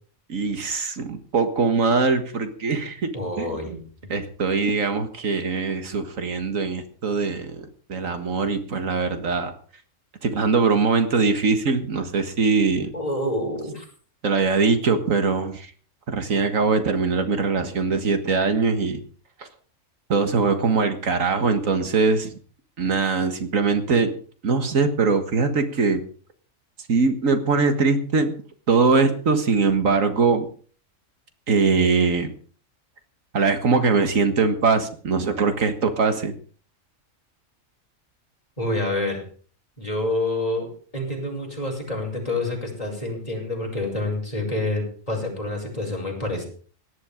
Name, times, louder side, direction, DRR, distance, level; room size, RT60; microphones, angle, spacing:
voice 1, 0.3-3.1 3.4-3.8 4.1-9.5 10.2-12.9 14.2-15.7 16.1-19.0 19.4-19.5 20.1-22.3 22.8-24.1 24.4-26.0 26.9-28.3 28.7-30.5 31.5-32.3 33.3-36.3, right 4 dB, 85° right, 8 dB, 2.0 m, -22 dB
voice 2, 3.1-4.1 12.9-13.9 38.6-39.2 39.8-46.4, left 1 dB, 30° left, -1 dB, 5.9 m, -28 dB
18.0 x 11.5 x 5.1 m, 0.43 s
omnidirectional pair, 1.3 m